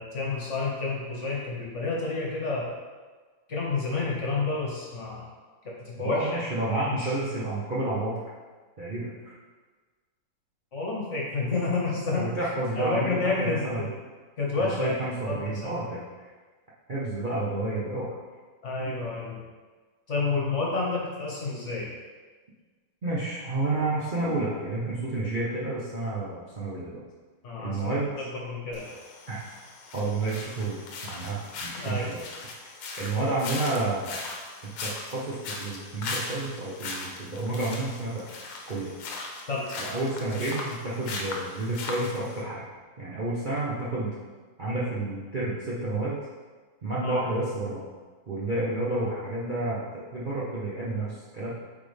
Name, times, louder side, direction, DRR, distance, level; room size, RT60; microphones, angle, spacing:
voice 1, 0.0-2.6 3.5-5.2 5.6-7.1 10.7-12.5 12.8-13.9 14.4-15.0 15.3-15.4 15.6-15.8 18.6-19.4 20.1-21.9 27.4-27.8 28.5-28.9 31.8-32.1 39.5-39.7 47.0-47.2, left 3 dB, 40° left, -4 dB, 1.2 m, -29 dB
voice 2, 6.0-8.2 8.8-9.3 12.1-13.1 13.4-13.8 14.5-16.3 16.9-18.2 23.0-27.0 27.6-28.1 29.3-29.4 29.9-32.2 33.0-34.2 34.8-38.2 38.7-38.9 39.8-42.7 43.0-44.2 44.6-46.2 46.8-47.9 48.3-51.5, right 2 dB, 90° right, -7 dB, 0.4 m, -30 dB
sound 1, 28.7-42.4, left 3 dB, 90° left, 1.8 m, -39 dB
8.3 x 4.2 x 3.4 m, 1.4 s
omnidirectional pair, 2.3 m